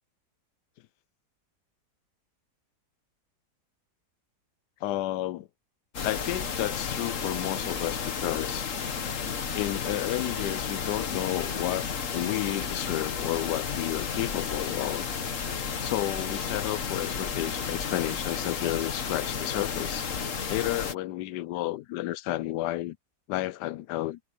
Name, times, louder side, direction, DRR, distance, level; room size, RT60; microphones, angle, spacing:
voice 1, 4.8-5.5 6.0-8.7 9.5-11.8 12.1-15.1 15.8-20.1 20.5-23.0 23.3-24.2, left 15 dB, 80° left, 1.2 m, -31 dB
sound 1, 5.9-20.9, left 6 dB, 50° left, 1.6 m, -32 dB
omnidirectional pair, 1.8 m